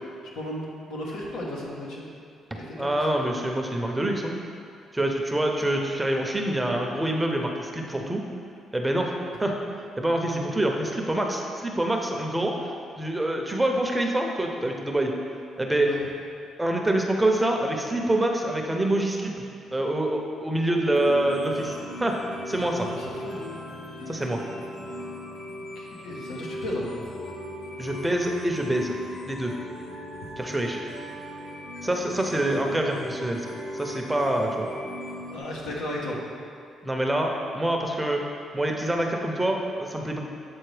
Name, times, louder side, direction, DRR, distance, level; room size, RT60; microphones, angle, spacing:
voice 1, 0.3-2.0 2.5-2.9 15.8-16.0 22.9-23.4 25.5-27.0 35.3-36.2, left 1 dB, 85° left, -4 dB, 1.1 m, -34 dB
voice 2, 2.7-4.3 4.9-8.2 8.7-9.1 9.4-9.5 10.0-12.5 13.0-15.1 15.6-15.9 16.6-19.3 19.7-22.2 22.5-22.9 24.1-24.4 27.8-29.0 29.2-29.5 30.4-30.8 31.8-33.4 33.7-34.7 36.8-38.2 38.5-40.2, right 1 dB, 10° right, 1 dB, 0.7 m, -26 dB
sound 1, 20.9-35.4, left 1 dB, 70° left, 1.3 m, -38 dB
7.8 x 4.0 x 3.3 m, 2.4 s
cardioid pair, 90°, 0 cm